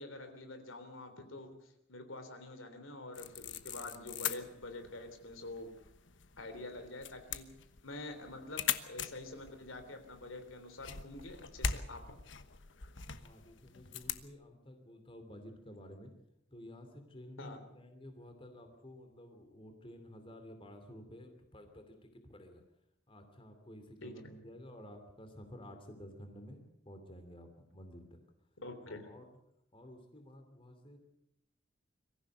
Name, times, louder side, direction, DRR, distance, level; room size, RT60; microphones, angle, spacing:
voice 1, 0.0-5.7 6.4-7.5 7.8-12.2 17.4-17.6 24.0-24.3 28.6-29.0, left 2 dB, 90° left, 7 dB, 3.4 m, -47 dB
sound 1, 3.1-14.3, left 7 dB, 65° left, 1.2 m, -42 dB
voice 2, 13.1-16.1 16.5-22.6 23.1-28.2 28.9-29.3 29.7-31.0, equal, 25° left, 6 dB, 2.9 m, -52 dB
23.5 x 15.0 x 7.9 m, 0.82 s
head